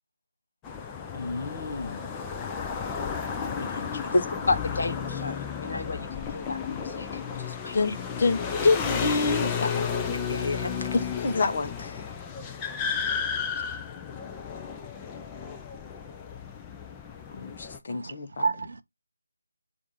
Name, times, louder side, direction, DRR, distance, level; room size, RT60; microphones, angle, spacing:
sound 1, 0.6-17.8, left 6 dB, 10° left, 0.5 m, -33 dB
voice 1, 1.1-2.1 3.4-4.1 7.7-9.9 10.9-12.0 17.3-18.5, left 3 dB, 35° left, 0.8 m, -28 dB
voice 2, 4.1-7.9 10.3-10.7, left 2 dB, 55° left, 1.1 m, -31 dB
voice 3, 17.9-18.8, right 4 dB, 50° right, 0.5 m, -30 dB
7.2 x 2.6 x 5.4 m
figure-of-eight pair, 160°, 0 cm